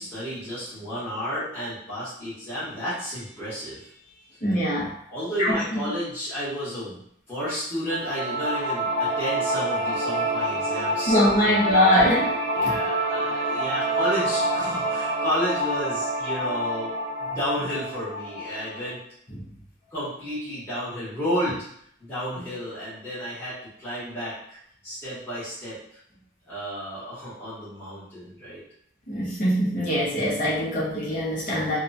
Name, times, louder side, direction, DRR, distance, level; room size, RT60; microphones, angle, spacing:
voice 1, 0.0-4.5 5.1-7.0 7.3-11.2 11.4-11.9 12.5-19.0 19.9-21.7 22.0-24.6 24.8-25.8 26.5-28.6, equal, 10° left, -13 dB, 1.2 m, -32 dB
voice 2, 4.4-4.9 5.4-5.8 11.1-12.3 12.6-12.8 29.1-31.8, equal, 45° left, -7 dB, 0.9 m, -22 dB
sound 1, 7.9-19.0, right 1 dB, 80° right, 0.6 m, -27 dB
2.9 x 2.1 x 2.6 m, 0.68 s
head